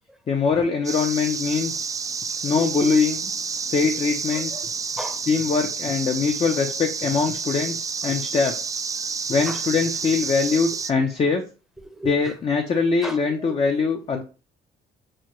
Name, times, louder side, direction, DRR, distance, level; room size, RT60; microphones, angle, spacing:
voice 1, 0.3-1.9 2.4-3.3 3.7-4.5 5.3-8.6 9.3-11.4 12.0-14.2, left 5 dB, 35° left, 3 dB, 0.6 m, -22 dB
sound 1, 0.8-10.9, right 5 dB, 20° right, 0.3 m, -30 dB
voice 2, 4.3-4.6 5.0-5.2 9.5-9.6 11.9-12.3 13.0-13.2 13.5-13.6, right 1 dB, ahead, 6 dB, 0.7 m, -36 dB
6.1 x 2.2 x 3.0 m, 0.34 s
cardioid pair, 110°, 17 cm